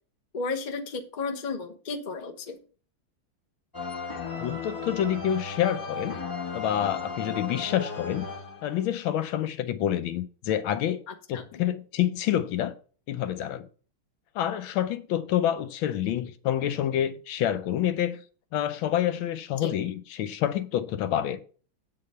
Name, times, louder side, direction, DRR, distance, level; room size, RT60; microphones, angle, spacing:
voice 1, 0.3-2.6 11.1-11.4 19.6-19.8, left 4 dB, 35° left, 0.7 m, -33 dB
sound 1, 3.7-9.0, left 4 dB, 15° left, 0.9 m, -35 dB
voice 2, 4.4-6.2 6.5-8.3 8.6-11.0 11.3-12.7 13.1-13.6 14.3-18.2 18.5-21.4, left 11 dB, 80° left, 1.4 m, -27 dB
8.5 x 3.8 x 6.6 m
omnidirectional pair, 2.2 m